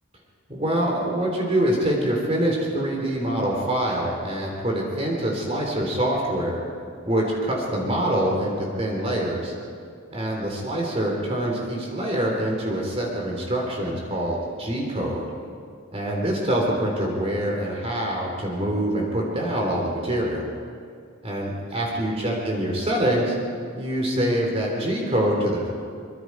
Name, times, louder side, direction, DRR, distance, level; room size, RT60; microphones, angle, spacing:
voice 1, 0.5-6.6 7.1-9.5 10.1-15.2 15.9-20.5 21.2-23.4 23.7-25.7, right 1 dB, 30° right, -1 dB, 3.7 m, -25 dB
24.5 x 24.0 x 4.8 m, 2.2 s
head